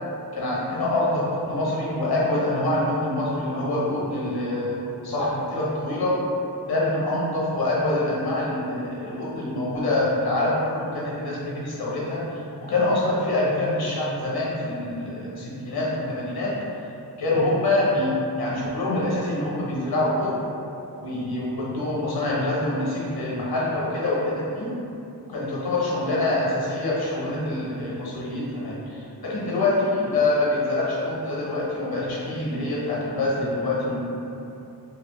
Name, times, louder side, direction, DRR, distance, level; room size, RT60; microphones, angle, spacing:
voice 1, 0.3-6.2 6.7-12.2 12.6-16.6 17.2-18.1 18.4-20.3 21.0-24.7 25.3-34.0, left 2 dB, 65° left, -6 dB, 0.8 m, -25 dB
2.5 x 2.4 x 3.4 m, 2.8 s
wide cardioid pair, 90°, 40 cm